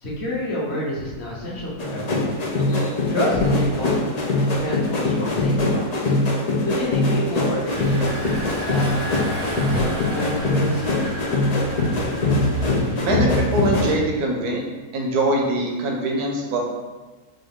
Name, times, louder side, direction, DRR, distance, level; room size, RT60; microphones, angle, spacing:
voice 1, 0.0-2.4 3.1-4.0 4.6-6.1 6.6-10.8, left 1 dB, 45° left, -5 dB, 1.3 m, -28 dB
sound 1, 1.8-13.9, left 2 dB, 80° left, 0.3 m, -22 dB
Engine, 7.7-13.5, right 1 dB, 35° right, 0.7 m, -33 dB
voice 2, 13.0-14.6 14.9-16.6, right 2 dB, 80° right, 0 dB, 1.4 m, -23 dB
5.5 x 2.6 x 3.6 m, 1.2 s
omnidirectional pair, 1.7 m